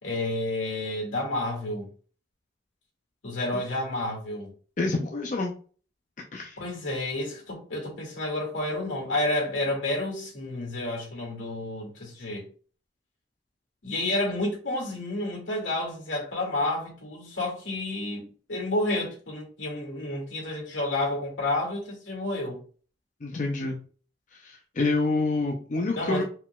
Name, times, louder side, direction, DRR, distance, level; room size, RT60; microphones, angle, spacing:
voice 1, 0.0-1.9 3.2-4.5 6.6-12.5 13.8-22.6 25.9-26.2, left 2 dB, 85° left, 2.2 m, -30 dB
voice 2, 4.8-5.5 6.3-6.6 23.2-23.8 24.4-26.2, left 3 dB, 40° left, 0.5 m, -27 dB
4.4 x 3.8 x 2.3 m
head